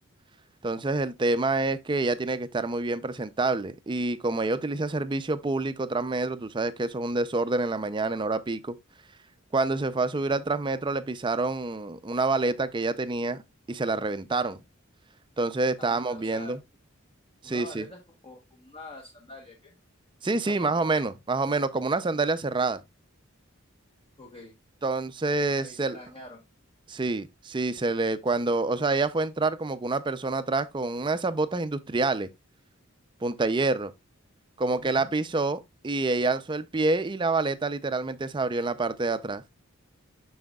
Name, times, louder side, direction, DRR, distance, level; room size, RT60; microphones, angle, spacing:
voice 1, 0.6-8.8 9.5-13.4 13.7-14.6 15.4-16.6 17.4-17.9 20.2-22.8 24.8-26.0 26.9-32.3 33.2-33.9 34.6-39.4, right 3 dB, 25° right, 0.5 m, -27 dB
voice 2, 15.8-16.6 17.4-19.7 20.3-20.8 24.2-24.5 25.6-26.4 34.8-35.1, left 2 dB, 25° left, 1.0 m, -45 dB
7.5 x 6.2 x 2.3 m
head